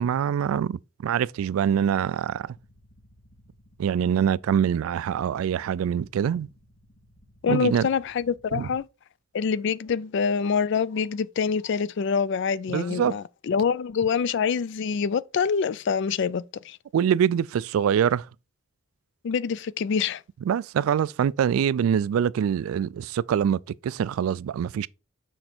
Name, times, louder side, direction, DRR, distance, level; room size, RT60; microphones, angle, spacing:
voice 1, 0.0-2.5 3.8-6.5 7.5-7.9 8.5-8.7 12.7-13.2 16.9-18.3 20.5-24.9, right 8 dB, 85° right, 0.3 m, -24 dB
sound 1, 2.3-8.8, equal, 75° left, 2.6 m, -58 dB
voice 2, 7.4-8.8 9.3-16.8 19.2-20.2, left 6 dB, 60° left, 0.3 m, -26 dB
6.4 x 4.5 x 4.3 m
head